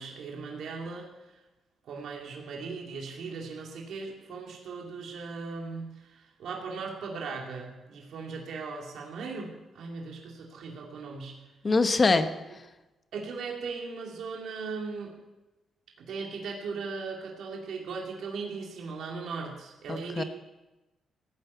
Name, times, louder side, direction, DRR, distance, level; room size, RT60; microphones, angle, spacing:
voice 1, 0.0-1.4 1.8-11.4 13.1-15.1 16.0-20.2, right 4 dB, 65° right, -1 dB, 2.6 m, -38 dB
voice 2, 11.6-12.3 19.9-20.2, left 3 dB, 25° left, 9 dB, 0.9 m, -23 dB
17.0 x 9.7 x 8.4 m, 1.1 s
wide cardioid pair, 175°, 0 cm